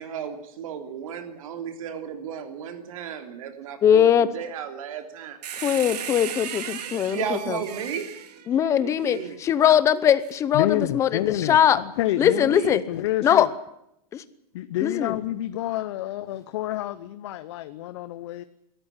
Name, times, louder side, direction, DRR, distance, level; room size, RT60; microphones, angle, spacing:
voice 1, 0.0-5.4 6.9-8.1 8.8-9.3 12.2-12.8, right 8 dB, 60° right, 7 dB, 3.3 m, -34 dB
voice 2, 3.8-4.3 5.6-7.6 8.5-11.8 12.2-12.8 13.2-13.5 14.1-14.2 14.8-15.2, left 9 dB, 15° left, 15 dB, 0.8 m, -21 dB
sound 1, 5.4-9.2 10.2-10.4, right 9 dB, 85° right, 2.8 m, -36 dB
voice 3, 10.5-13.5 14.5-18.4, left 13 dB, 45° left, 13 dB, 0.8 m, -28 dB
22.0 x 14.0 x 9.9 m, 0.81 s
supercardioid pair, 175°, 20 cm